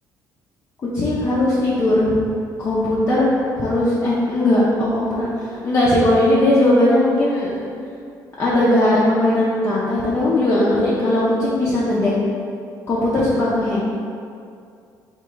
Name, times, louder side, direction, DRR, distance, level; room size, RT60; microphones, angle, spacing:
voice 1, 0.9-2.1 2.6-3.3 3.6-5.3 5.6-7.5 8.4-12.1 12.9-13.8, left 1 dB, 40° left, -8 dB, 0.7 m, -18 dB
3.6 x 2.6 x 4.5 m, 2.4 s
cardioid pair, 120°, 8 cm